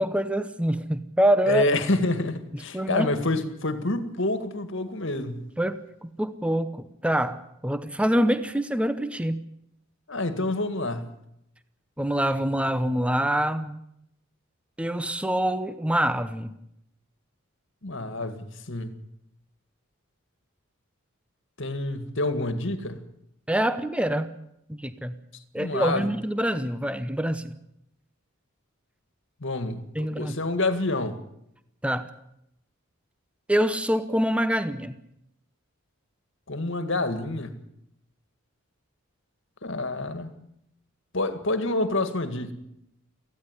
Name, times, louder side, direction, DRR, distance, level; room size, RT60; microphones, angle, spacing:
voice 1, 0.0-1.6 2.5-3.1 5.6-9.4 12.0-13.8 14.8-16.5 23.5-24.3 24.7-25.2 25.5-27.5 29.9-30.4 31.8-32.0 33.5-35.0, right 1 dB, 5° right, 0.8 m, -25 dB
voice 2, 1.5-5.5 10.1-11.1 17.8-18.9 21.6-23.0 25.6-26.1 29.4-31.2 36.5-37.5 39.6-40.3 41.1-42.5, left 2 dB, 60° left, 2.0 m, -28 dB
19.0 x 15.5 x 9.7 m
head